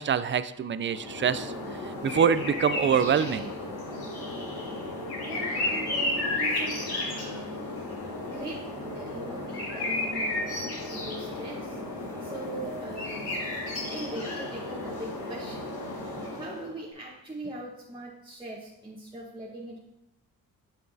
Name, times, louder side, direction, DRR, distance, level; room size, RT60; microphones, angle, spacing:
voice 1, 0.0-1.5 2.0-3.5, right 7 dB, 35° right, 14 dB, 0.4 m, -25 dB
sound 1, 0.8-16.7, left 2 dB, 85° left, 2.2 m, -33 dB
voice 2, 5.3-7.6 8.3-10.6 10.9-13.3 13.9-15.7 16.4-19.8, right 1 dB, 15° right, -4 dB, 1.2 m, -41 dB
8.0 x 5.8 x 2.7 m, 0.88 s
supercardioid pair, 60°, 37 cm